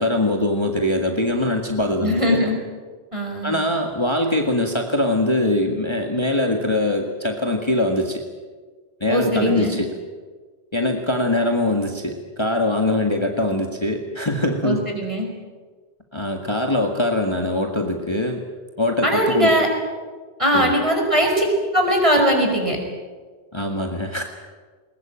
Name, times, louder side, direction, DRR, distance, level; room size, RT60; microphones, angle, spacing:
voice 1, 0.0-2.4 3.4-8.2 9.0-9.9 10.7-14.8 16.1-18.4 18.8-19.6 20.5-20.7 23.5-24.2, left 1 dB, 25° left, 3 dB, 1.8 m, -22 dB
voice 2, 2.0-2.6 3.1-3.5 9.1-9.8 14.6-15.3 19.0-19.7 20.4-21.5 21.7-22.8, equal, 30° right, 1 dB, 5.3 m, -20 dB
21.0 x 20.5 x 9.0 m, 1.5 s
omnidirectional pair, 1.1 m